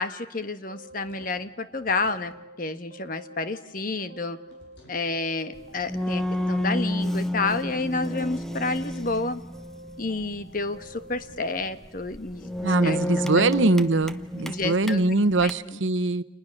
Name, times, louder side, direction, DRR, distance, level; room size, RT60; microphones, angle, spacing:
voice 1, 0.0-2.3 2.6-4.4 4.9-6.2 6.5-9.4 10.0-12.5 12.8-13.4 14.4-15.0 15.4-15.8, left 3 dB, 45° left, 10 dB, 1.3 m, -30 dB
sound 1, 0.7-2.4 4.5-5.1, left 1 dB, 65° left, 7.9 m, -55 dB
sound 2, 0.7-2.6 2.9-4.8 5.1-7.0 7.3-9.2 9.5-11.4, equal, 40° right, 4.0 m, -48 dB
sound 3, 5.5-15.5, left 1 dB, ahead, 0.9 m, -31 dB
voice 2, 12.6-16.2, right 3 dB, 80° right, 13 dB, 1.0 m, -22 dB
30.0 x 28.5 x 6.5 m, 1.0 s
head